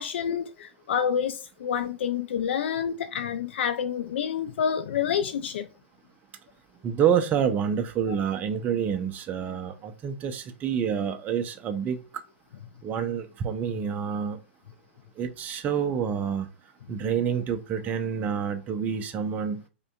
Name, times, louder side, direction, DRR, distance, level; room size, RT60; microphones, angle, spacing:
voice 1, 0.0-5.7, left 8 dB, 65° left, 0.4 m, -28 dB
voice 2, 6.8-12.0 12.8-14.4 15.2-16.5 16.9-19.6, right 7 dB, 25° right, 0.4 m, -28 dB
4.9 x 2.2 x 2.4 m
hypercardioid pair, 115°, 7 cm